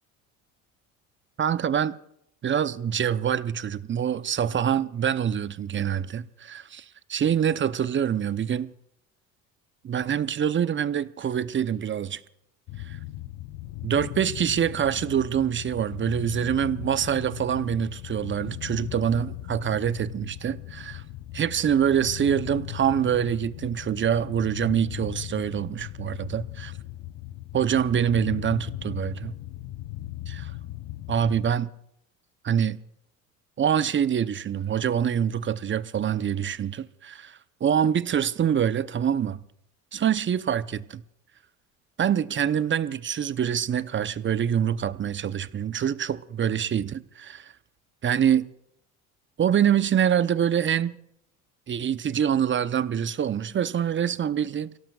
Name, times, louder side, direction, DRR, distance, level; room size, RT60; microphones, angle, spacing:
voice 1, 1.4-2.0 2.4-6.8 7.1-8.7 9.8-12.2 12.8-13.0 13.8-21.0 21.3-26.7 27.5-29.3 30.3-30.5 31.1-31.7 32.4-32.8 33.6-39.4 39.9-41.0 42.0-47.5 48.0-48.5 49.4-51.0 51.7-54.8, right 8 dB, 30° right, 0.8 m, -25 dB
sound 1, 12.7-31.5, left 15 dB, 55° left, 0.9 m, -38 dB
29.5 x 17.5 x 2.4 m
hypercardioid pair, 65°, 40 cm